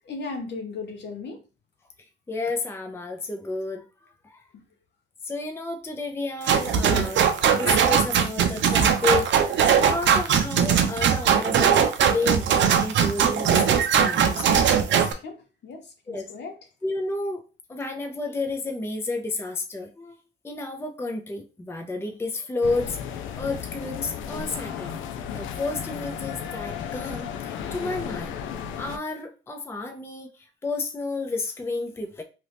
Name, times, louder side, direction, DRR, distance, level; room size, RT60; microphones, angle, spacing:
voice 1, 0.1-1.4 4.5-4.6 14.9-15.4 15.6-16.6, left 3 dB, 60° left, 4 dB, 0.9 m, -36 dB
voice 2, 2.3-4.4 5.2-7.3 7.5-14.8 15.0-15.2 16.1-16.3 16.8-17.4 17.7-20.2 20.4-25.0 25.3-28.4 28.8-32.2, left 3 dB, 10° left, 4 dB, 0.5 m, -31 dB
sound 1, 6.5-15.1, right 7 dB, 70° right, 0.5 m, -20 dB
sound 2, 22.6-29.0, left 8 dB, 80° left, 0.5 m, -34 dB
2.9 x 2.5 x 3.3 m, 0.33 s
cardioid pair, 90°, 20 cm